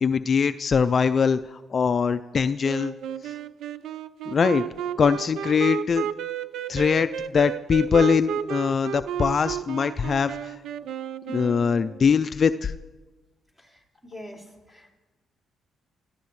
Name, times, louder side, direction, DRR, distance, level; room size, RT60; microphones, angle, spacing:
voice 1, 0.0-2.9 3.2-3.3 4.3-4.7 5.0-6.1 6.7-10.5 11.3-12.7, left 6 dB, 45° left, 11 dB, 0.4 m, -22 dB
Wind instrument woodwind instrument, 2.6-12.1, right 9 dB, 75° right, 0.5 m, -32 dB
voice 2, 13.6-14.9, left 1 dB, 10° right, -2 dB, 4.2 m, -45 dB
24.0 x 14.0 x 3.2 m, 1.2 s
cardioid pair, 90°, 0 cm